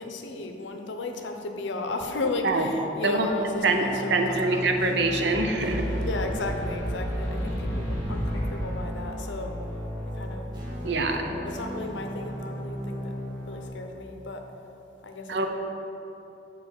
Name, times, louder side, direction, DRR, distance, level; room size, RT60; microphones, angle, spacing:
voice 1, 0.0-4.6 6.0-9.5 10.1-10.5 11.1-13.1 13.5-14.4 15.0-15.5, left 2 dB, 70° left, 4 dB, 0.6 m, -34 dB
sound 1, 3.5-13.7, equal, 25° right, 1.1 m, -35 dB
voice 2, 3.6-5.9 10.8-11.2 15.3-15.5, right 3 dB, 65° right, 4 dB, 0.6 m, -24 dB
sound 2, 5.3-8.7, equal, 15° left, 1.5 m, -32 dB
6.5 x 4.1 x 6.5 m, 3.0 s
head